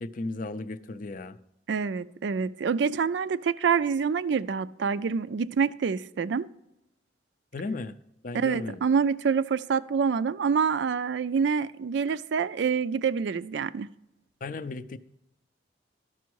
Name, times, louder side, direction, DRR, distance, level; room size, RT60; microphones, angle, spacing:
voice 1, 0.0-1.4 7.5-8.0 8.2-8.8 14.4-15.0, left 3 dB, 45° left, 0.4 m, -35 dB
voice 2, 1.7-6.5 8.3-13.9, right 6 dB, 65° right, 0.4 m, -26 dB
12.5 x 6.1 x 4.6 m
head